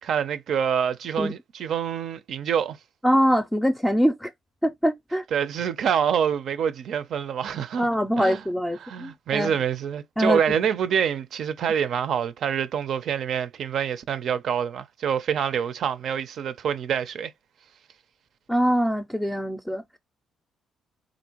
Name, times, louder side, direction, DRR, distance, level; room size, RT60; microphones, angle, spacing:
voice 1, 0.0-2.8 5.3-7.9 8.2-8.4 8.8-17.3, right 8 dB, 70° right, 0.6 m, -26 dB
voice 2, 3.0-4.3 4.6-5.2 7.8-9.5 10.2-10.4 18.5-20.0, equal, 5° left, 0.5 m, -23 dB
4.1 x 2.6 x 3.0 m
cardioid pair, 90°, 0 cm